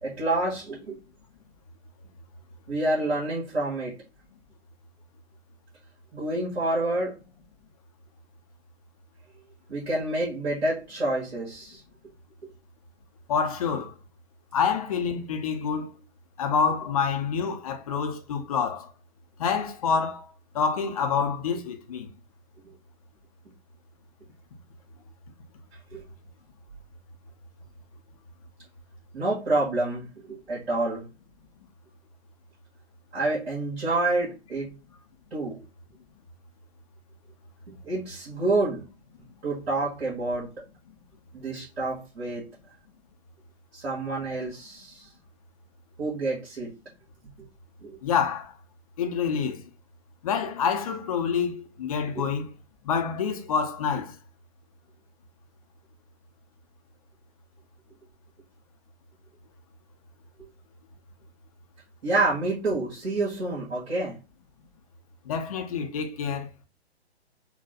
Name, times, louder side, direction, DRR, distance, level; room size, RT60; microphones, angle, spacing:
voice 1, 0.0-1.0 2.7-3.9 6.1-7.1 9.7-11.8 22.6-22.8 25.9-26.0 29.1-31.0 33.1-34.7 35.3-35.6 37.7-38.8 39.4-40.5 41.3-42.4 43.7-45.1 46.0-46.7 47.4-47.5 47.8-48.0 52.1-52.3 60.4-60.5 62.0-64.2, right 2 dB, 65° right, 1.9 m, -28 dB
voice 2, 13.3-13.9 14.5-16.0 16.4-18.9 19.4-20.3 20.5-22.1 48.0-48.5 49.0-49.7 50.2-52.5 52.8-54.2 65.3-66.5, left 6 dB, 35° left, 0.6 m, -27 dB
4.2 x 2.3 x 3.8 m
figure-of-eight pair, 125°, 33 cm